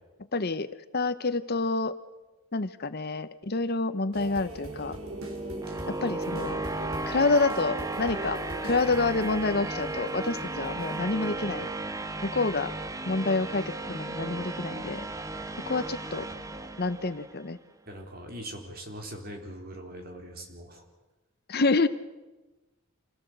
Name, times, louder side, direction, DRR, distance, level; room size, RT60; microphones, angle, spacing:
voice 1, 0.3-1.9 2.5-5.0 5.9-6.6 7.1-8.4 8.6-11.7 12.2-12.7 13.1-15.0 15.7-16.3 16.8-17.6 21.5-21.9, left 3 dB, 45° left, 13 dB, 0.9 m, -28 dB
sound 1, 4.1-12.1 12.5-12.7, right 1 dB, 75° right, 3.9 m, -41 dB
sound 2, 4.5-17.5, right 2 dB, 15° right, 1.0 m, -35 dB
voice 2, 17.9-20.8, right 1 dB, 45° right, 2 dB, 3.9 m, -42 dB
26.5 x 17.0 x 7.9 m, 1.1 s
head